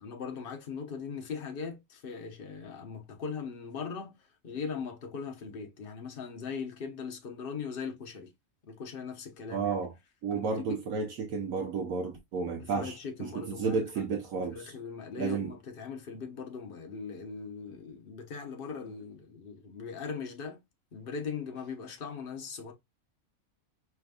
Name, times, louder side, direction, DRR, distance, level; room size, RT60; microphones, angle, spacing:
voice 1, 0.0-4.1 4.4-8.3 8.7-9.7 10.3-10.8 12.6-13.8 14.5-20.6 20.9-22.7, left 5 dB, 45° left, 1.0 m, -40 dB
voice 2, 9.5-9.9 10.2-14.7 15.2-15.5, right 5 dB, 70° right, 1.2 m, -32 dB
5.0 x 3.4 x 2.3 m
omnidirectional pair, 1.5 m